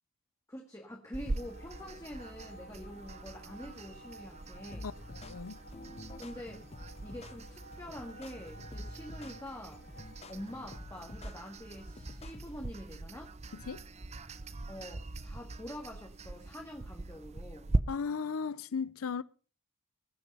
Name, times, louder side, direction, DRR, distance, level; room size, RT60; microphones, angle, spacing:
voice 1, 0.5-4.9 6.2-6.6 7.0-13.3 14.7-17.8, equal, 15° left, 1.7 m, -46 dB
sound 1, 1.1-17.8, right 2 dB, 30° right, 0.6 m, -41 dB
sound 2, 1.4-10.8, equal, 45° left, 1.5 m, -55 dB
sound 3, 4.7-12.7, left 2 dB, 30° left, 0.7 m, -48 dB
voice 2, 4.8-5.6 13.7-13.8 17.9-19.2, left 5 dB, 80° left, 0.5 m, -36 dB
20.5 x 6.9 x 5.4 m
head